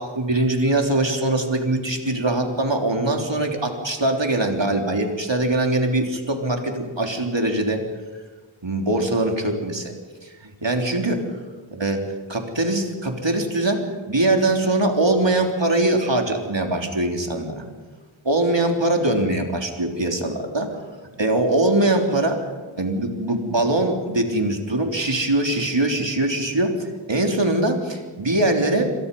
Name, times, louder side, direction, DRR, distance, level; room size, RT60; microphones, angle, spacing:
voice 1, 0.0-7.8 8.6-9.9 10.2-11.2 11.7-17.6 18.2-20.7 21.1-22.4 22.8-28.9, right 2 dB, 65° right, 2 dB, 3.6 m, -22 dB
27.5 x 25.5 x 5.5 m, 1.3 s
wide cardioid pair, 40°, 47 cm